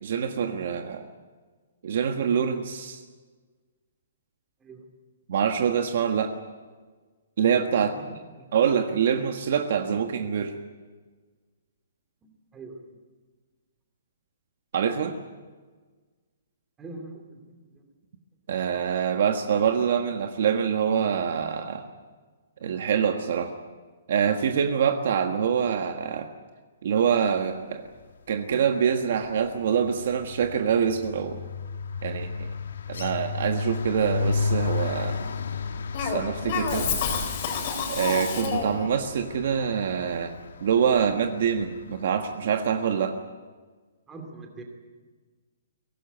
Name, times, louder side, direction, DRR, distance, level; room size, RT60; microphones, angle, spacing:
voice 1, 0.0-1.1 1.8-3.0 5.3-6.3 7.4-8.0 8.5-10.6 14.7-15.2 18.5-21.8 22.6-23.5 24.1-26.3 26.8-27.9 28.3-31.4 32.0-32.5 32.9-35.2 36.0-36.9 37.9-43.2, right 7 dB, 45° right, 6 dB, 1.5 m, -25 dB
voice 2, 7.9-8.5 12.2-12.9 16.8-17.9 44.1-44.6, right 3 dB, 10° right, 3 dB, 2.6 m, -44 dB
sound 1, 28.3-28.6 28.9-42.1, left 4 dB, 70° left, 1.9 m, -33 dB
Cough, 35.9-38.9, left 5 dB, 30° left, 4.1 m, -29 dB
23.0 x 18.0 x 9.2 m, 1.4 s
hypercardioid pair, 180°, 0 cm